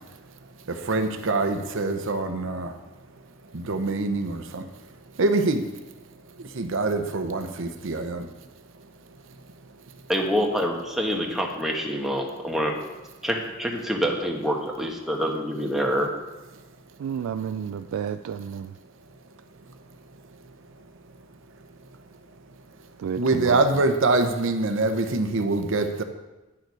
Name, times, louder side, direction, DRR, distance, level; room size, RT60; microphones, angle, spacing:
voice 1, 0.7-2.8 3.5-4.7 5.2-5.7 6.4-8.3 23.2-26.0, right 3 dB, 65° right, 8 dB, 0.8 m, -24 dB
voice 2, 10.1-12.7 13.2-16.1, equal, ahead, 0 dB, 1.1 m, -26 dB
voice 3, 17.0-18.7 23.0-23.6, right 8 dB, 80° right, 10 dB, 0.3 m, -31 dB
9.7 x 6.6 x 4.7 m, 1.1 s
head